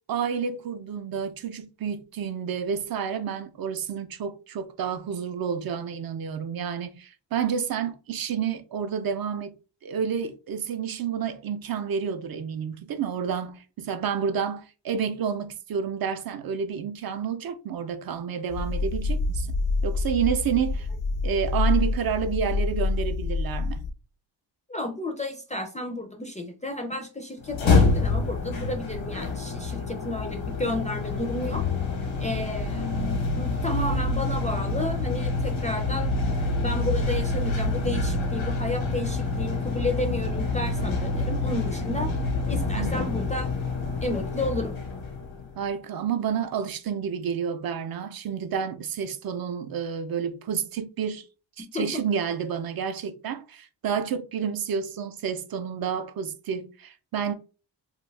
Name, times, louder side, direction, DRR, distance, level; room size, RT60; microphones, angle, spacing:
voice 1, 0.1-9.5 9.8-19.5 19.8-20.9 21.2-23.8 42.7-43.0 45.6-51.2 51.6-57.4, right 7 dB, 50° right, 0.5 m, -30 dB
sound 1, 18.5-23.9, left 3 dB, 70° left, 0.5 m, -27 dB
voice 2, 24.7-31.7 32.2-33.1 33.3-42.1 42.5-43.5 44.0-44.8 51.6-52.0, left 1 dB, 15° left, 0.3 m, -32 dB
sound 2, 27.4-45.6, left 3 dB, 90° left, 1.0 m, -27 dB
2.6 x 2.3 x 3.2 m
cardioid pair, 110°, 46 cm